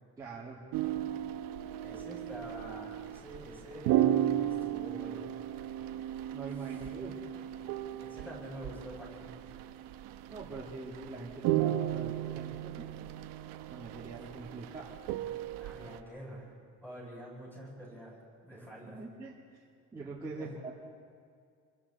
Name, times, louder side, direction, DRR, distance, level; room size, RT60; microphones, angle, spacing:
voice 1, 0.2-0.6 6.3-7.2 10.3-13.1 13.7-15.0 18.9-19.4 19.9-20.7, right 3 dB, 10° right, -8 dB, 2.2 m, -43 dB
sound 1, 0.7-16.0, right 12 dB, 90° right, 1.0 m, -35 dB
voice 2, 1.8-5.3 8.0-9.3 15.6-16.5 16.8-18.2 18.4-19.0 20.3-20.5, equal, 5° left, -5 dB, 7.9 m, -46 dB
29.0 x 23.5 x 4.2 m, 2.2 s
cardioid pair, 180°, 32 cm